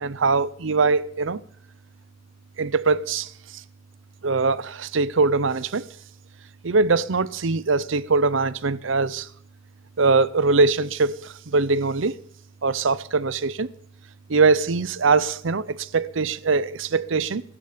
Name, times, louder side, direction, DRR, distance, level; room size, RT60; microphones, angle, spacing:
voice 1, 0.0-1.4 2.6-3.3 4.2-5.9 6.6-9.3 10.0-12.2 12.6-13.7 14.3-17.4, right 4 dB, 80° right, 0.7 m, -22 dB
22.0 x 12.5 x 5.2 m
head